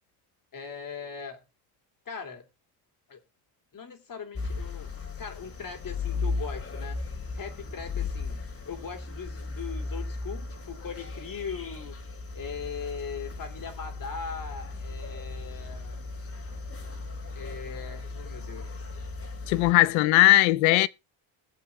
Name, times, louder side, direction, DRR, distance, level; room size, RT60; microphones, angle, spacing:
voice 1, 0.5-1.4 2.0-2.4 3.1-3.2 3.7-4.9 5.2-7.0 7.3-12.0 12.3-16.0 17.3-18.8, left 6 dB, 45° left, 3.0 m, -40 dB
sound 1, 4.4-19.7, left 3 dB, 30° left, 2.6 m, -36 dB
voice 2, 19.5-20.9, left 18 dB, 90° left, 0.8 m, -19 dB
21.0 x 7.5 x 2.3 m
cardioid pair, 85°, 45 cm